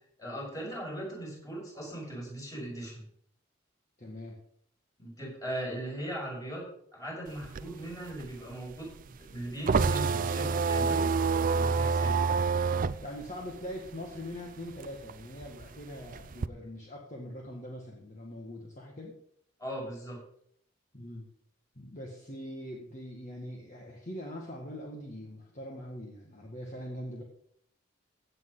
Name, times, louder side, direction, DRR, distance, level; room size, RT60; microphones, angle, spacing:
voice 1, 0.2-3.0 5.0-6.6 6.9-11.1 11.5-12.2 19.6-20.2, right 1 dB, 20° left, -3 dB, 6.0 m, -39 dB
voice 2, 4.0-4.4 13.0-19.1 20.9-21.3 21.8-27.2, equal, 40° left, -1 dB, 1.8 m, -42 dB
sound 1, 7.3-14.4 14.7-16.5, right 5 dB, 40° right, 0.4 m, -28 dB
16.0 x 8.2 x 4.0 m, 0.69 s
head